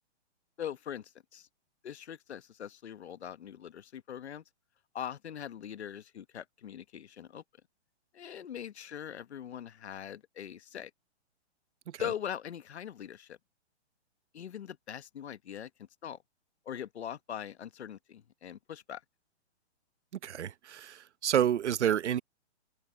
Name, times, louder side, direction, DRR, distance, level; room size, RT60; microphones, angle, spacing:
voice 1, 0.6-1.5 1.8-4.4 4.9-7.4 8.1-10.9 12.0-13.4 14.3-16.2 16.6-19.0, left 9 dB, 70° left, 1.2 m, -41 dB
voice 2, 20.2-22.2, right 9 dB, 80° right, 0.9 m, -29 dB
hypercardioid pair, 180°, 34 cm